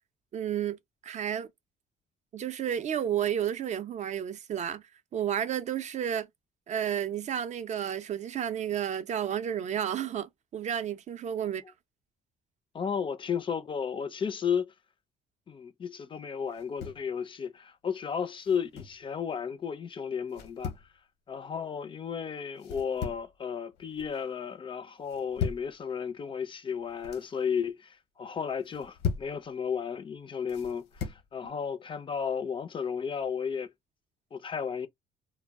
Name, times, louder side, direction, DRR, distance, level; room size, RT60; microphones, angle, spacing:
voice 1, 0.3-1.5 2.3-4.8 5.1-6.3 6.7-11.6, right 9 dB, 45° right, 0.5 m, -31 dB
voice 2, 12.7-14.7 15.5-20.7 21.3-33.7 34.3-34.9, left 7 dB, 30° left, 0.4 m, -33 dB
sound 1, 16.5-17.1 18.4-19.0 20.3-20.9 22.6-23.3 23.7-24.2 25.0-25.7 26.8-27.3 28.6-29.4 30.5-31.2, left 7 dB, 80° left, 0.8 m, -37 dB
2.2 x 2.0 x 3.4 m
cardioid pair, 110°, 17 cm